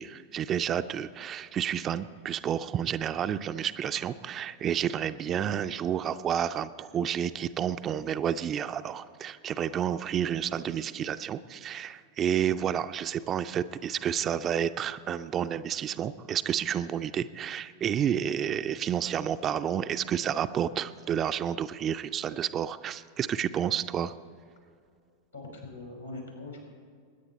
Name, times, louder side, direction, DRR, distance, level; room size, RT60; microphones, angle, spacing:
voice 1, 0.0-24.1, right 9 dB, 30° right, 12 dB, 0.4 m, -30 dB
voice 2, 25.3-26.7, left 2 dB, 85° left, 0 dB, 4.4 m, -42 dB
22.0 x 9.8 x 4.2 m, 2.2 s
figure-of-eight pair, 90°, 0 cm